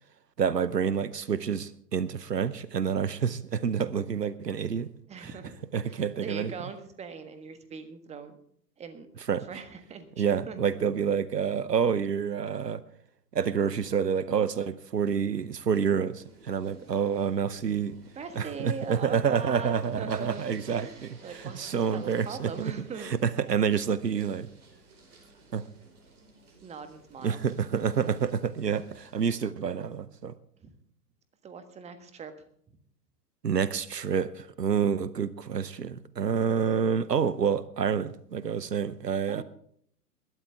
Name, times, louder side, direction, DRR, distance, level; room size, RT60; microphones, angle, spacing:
voice 1, 0.4-4.9 5.2-5.3 5.7-6.5 9.3-9.5 10.2-12.8 13.3-18.0 18.4-22.5 23.0-24.5 25.5-25.7 27.2-30.3 33.4-39.4, right 7 dB, 85° right, 18 dB, 0.8 m, -28 dB
voice 2, 5.1-5.5 5.8-8.4 8.8-9.1 9.5-10.6 18.1-23.1 26.6-27.4 30.6-30.7 31.4-32.3 39.3-39.4, right 5 dB, 15° right, 9 dB, 1.4 m, -41 dB
sound 1, 16.2-29.5, right 2 dB, 60° right, 4.8 m, -55 dB
21.0 x 12.5 x 3.5 m, 0.63 s
figure-of-eight pair, 110°, 48 cm